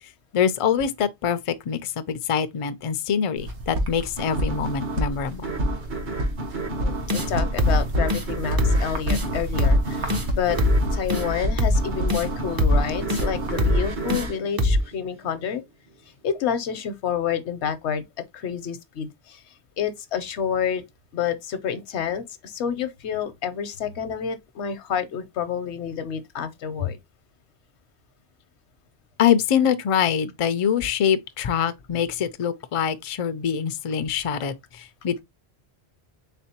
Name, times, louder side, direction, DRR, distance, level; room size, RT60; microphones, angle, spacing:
voice 1, 0.3-5.5 29.2-35.2, left 8 dB, 60° left, 0.3 m, -24 dB
sound 1, 3.4-14.3, equal, 90° right, 1.2 m, -29 dB
sound 2, 4.2-15.4, right 2 dB, 50° right, 0.8 m, -33 dB
voice 2, 6.8-10.6 10.9-15.6 16.2-18.0 18.3-19.4 19.8-20.8 21.1-27.0, left 8 dB, 85° left, 1.0 m, -29 dB
sound 3, 7.1-7.3 7.6-7.8 8.1-8.3 8.6-8.8 9.1-9.3 9.6-9.8 10.1-10.3 10.6-10.8 11.1-11.2 11.6-11.8 12.1-12.3 12.6-12.8 13.1-13.3 13.6-13.8 14.1-14.3 14.6-14.8, left 1 dB, 30° right, 0.4 m, -21 dB
4.2 x 3.6 x 2.8 m
omnidirectional pair, 1.1 m